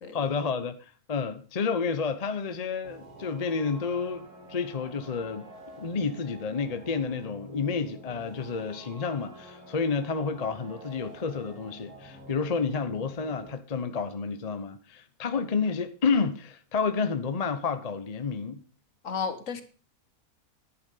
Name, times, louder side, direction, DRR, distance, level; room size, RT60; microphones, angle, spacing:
voice 1, 0.1-0.8 1.1-5.5 5.8-18.6, left 5 dB, 30° left, 0.8 m, -30 dB
sound 1, 2.8-13.5, equal, 85° right, 3.5 m, -48 dB
voice 2, 19.0-19.6, left 6 dB, 60° left, 1.7 m, -33 dB
11.0 x 8.9 x 5.4 m
omnidirectional pair, 1.6 m